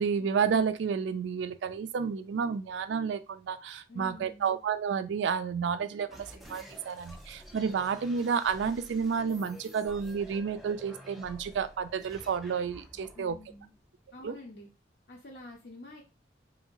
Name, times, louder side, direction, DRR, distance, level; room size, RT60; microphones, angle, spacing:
voice 1, 0.0-13.4 14.2-14.3, right 6 dB, 75° right, 0.3 m, -31 dB
voice 2, 3.9-4.6 13.1-13.7 14.1-14.7 15.1-16.0, left 2 dB, 60° left, 0.5 m, -48 dB
sound 1, 6.1-14.3, equal, ahead, 0.4 m, -50 dB
2.7 x 2.6 x 2.9 m
head